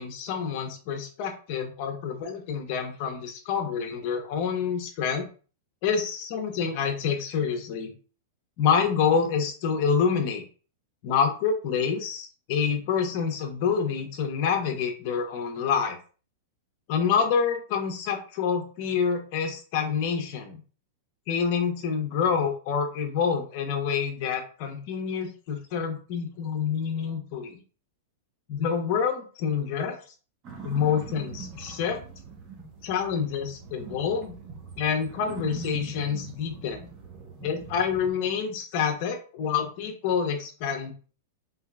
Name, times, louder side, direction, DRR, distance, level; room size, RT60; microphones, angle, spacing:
voice 1, 0.0-5.3 5.8-7.9 8.6-10.4 11.0-16.0 16.9-20.6 21.3-27.6 28.5-30.0 30.6-32.0 32.8-34.4 34.8-36.9 37.4-40.9, left 6 dB, 45° left, 3 dB, 1.0 m, -27 dB
sound 1, 30.4-38.1, right 5 dB, 30° right, 1.0 m, -42 dB
3.6 x 3.4 x 2.3 m, 0.37 s
supercardioid pair, 145°, 0 cm